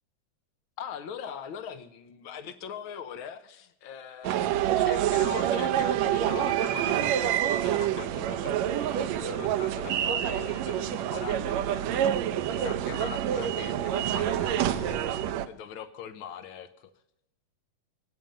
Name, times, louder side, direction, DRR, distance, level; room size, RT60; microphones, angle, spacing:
voice 1, 0.8-16.9, left 8 dB, 80° left, 10 dB, 1.1 m, -41 dB
sound 1, 4.2-15.5, right 11 dB, 75° right, 1.8 m, -27 dB
25.5 x 9.0 x 5.3 m, 0.82 s
omnidirectional pair, 3.5 m